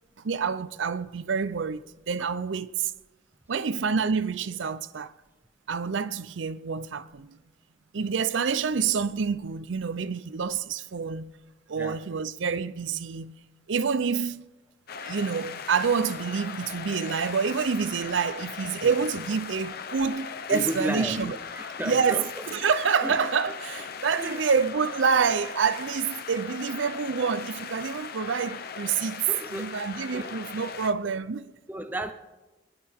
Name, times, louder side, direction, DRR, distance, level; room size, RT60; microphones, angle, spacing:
voice 1, 0.2-2.9 3.5-5.1 5.7-7.4 7.9-11.3 11.7-13.4 13.7-14.5 15.0-21.4 21.8-29.2 29.5-31.5, right 5 dB, 70° right, 0.5 m, -27 dB
sound 1, 14.9-30.9, left 6 dB, 50° left, 0.8 m, -39 dB
voice 2, 20.5-22.3 23.0-23.2 24.2-24.4 29.3-29.8 30.1-30.3 31.7-32.1, equal, 10° right, 0.6 m, -33 dB
27.0 x 10.5 x 3.6 m
head